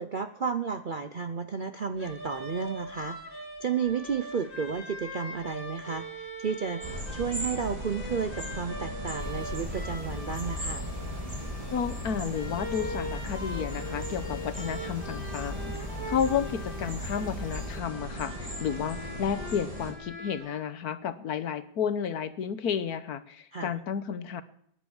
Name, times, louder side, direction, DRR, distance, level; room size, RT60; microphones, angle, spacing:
voice 1, 0.0-6.8 7.1-10.8 23.5-23.7, right 6 dB, 50° right, 9 dB, 0.6 m, -32 dB
sound 1, 2.0-20.6, equal, 30° left, 3.2 m, -42 dB
sound 2, 6.8-19.9, right 1 dB, 20° right, 2.9 m, -38 dB
sound 3, 9.2-17.8, left 2 dB, 5° left, 2.3 m, -40 dB
voice 2, 11.7-15.8 16.1-24.4, left 8 dB, 70° left, 13 dB, 1.4 m, -32 dB
19.0 x 10.5 x 7.1 m, 0.70 s
omnidirectional pair, 1.8 m